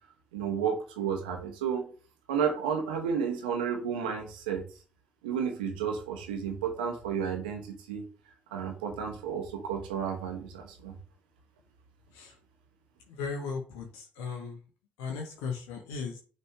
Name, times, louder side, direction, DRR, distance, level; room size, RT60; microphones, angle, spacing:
voice 1, 0.3-1.9 2.3-4.6 5.2-8.0 8.5-10.9, right 7 dB, 85° right, 3 dB, 1.1 m, -32 dB
voice 2, 13.1-14.6 15.0-16.2, left 5 dB, 75° left, 2 dB, 1.0 m, -36 dB
6.7 x 3.4 x 4.8 m, 0.39 s
hypercardioid pair, 40°, 5 cm